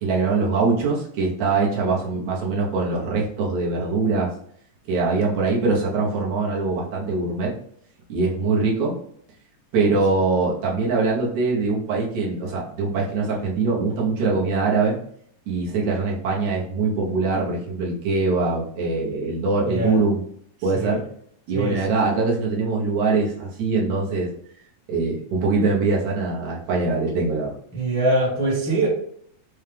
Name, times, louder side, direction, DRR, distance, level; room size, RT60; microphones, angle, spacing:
voice 1, 0.0-4.3 4.9-7.5 8.1-9.0 9.7-15.0 15.5-20.2 20.6-21.0 21.5-24.3 24.9-27.5, right 3 dB, 70° right, -4 dB, 2.2 m, -23 dB
voice 2, 19.6-20.0 20.7-21.0 21.5-21.8 27.7-28.9, right 1 dB, 20° right, -6 dB, 0.6 m, -23 dB
5.6 x 2.4 x 3.4 m, 0.65 s
omnidirectional pair, 3.5 m